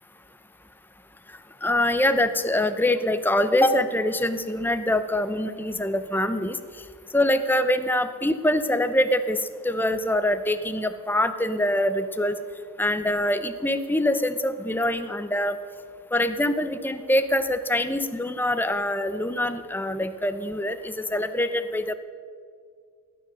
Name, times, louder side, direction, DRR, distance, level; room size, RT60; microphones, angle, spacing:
voice 1, 1.6-6.6 7.1-9.4 9.6-12.4 12.8-15.6 16.1-21.9, left 1 dB, 10° left, 10 dB, 0.7 m, -24 dB
18.5 x 10.0 x 6.4 m, 2.1 s
head